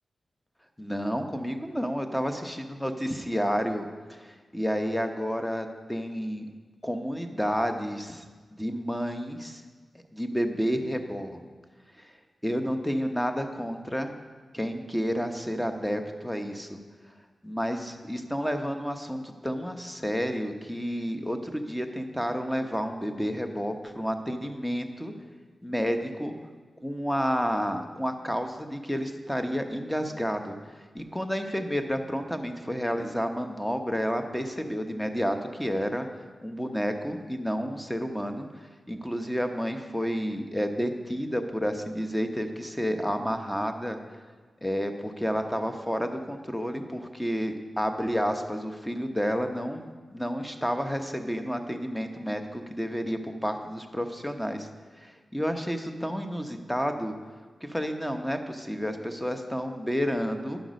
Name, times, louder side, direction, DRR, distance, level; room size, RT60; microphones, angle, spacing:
voice 1, 0.8-6.5 6.8-8.2 8.5-9.6 10.1-11.4 12.0-12.1 12.4-14.1 14.5-16.8 17.4-25.1 25.6-26.3 26.8-36.1 36.4-44.2 44.6-54.7 55.0-57.1 57.6-60.6, equal, 5° left, 6 dB, 1.0 m, -30 dB
10.5 x 6.0 x 5.2 m, 1.4 s
cardioid pair, 40°, 0 cm